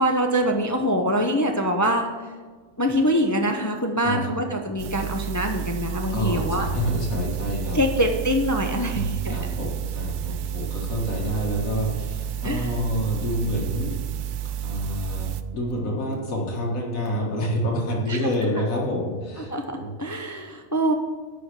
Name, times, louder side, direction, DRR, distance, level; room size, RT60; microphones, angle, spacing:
voice 1, 0.0-2.3 2.8-6.7 7.7-9.4 12.4-12.7 18.1-18.3 19.5-20.9, equal, 20° left, 4 dB, 0.5 m, -24 dB
sound 1, 4.8-15.4, right 10 dB, 75° right, 0.9 m, -31 dB
voice 2, 6.1-7.8 8.7-14.0 14.6-20.0, equal, 85° left, -2 dB, 2.2 m, -28 dB
11.5 x 5.1 x 6.9 m, 1.5 s
omnidirectional pair, 1.4 m